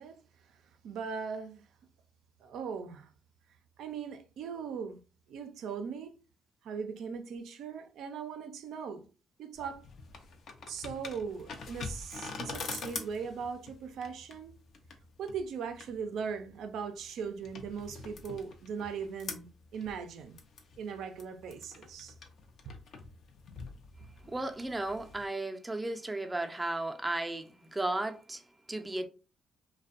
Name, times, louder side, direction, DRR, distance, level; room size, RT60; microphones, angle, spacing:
voice 1, 0.0-1.7 2.4-3.1 3.8-5.0 5.3-6.2 6.6-9.1 9.4-9.8 10.7-14.6 15.2-20.4 20.8-22.2 22.6-22.7, right 6 dB, 80° right, 0.4 m, -39 dB
sound 1, 9.6-25.3, left 4 dB, 65° left, 0.5 m, -46 dB
voice 2, 24.3-28.4 28.7-29.1, right 2 dB, 15° right, 0.4 m, -34 dB
2.5 x 2.1 x 2.4 m
cardioid pair, 90°, 0 cm